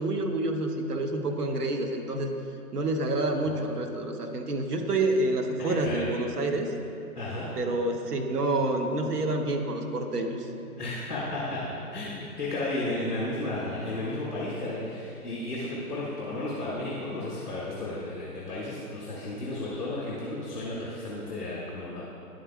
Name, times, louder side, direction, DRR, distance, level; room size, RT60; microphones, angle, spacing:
voice 1, 0.0-2.4 2.7-6.7 7.6-10.5, right 2 dB, 75° right, 4 dB, 1.0 m, -28 dB
voice 2, 5.6-6.1 7.1-7.5 10.8-11.6 11.9-22.0, left 2 dB, ahead, -10 dB, 0.5 m, -33 dB
10.5 x 3.8 x 3.6 m, 2.7 s
hypercardioid pair, 145°, 47 cm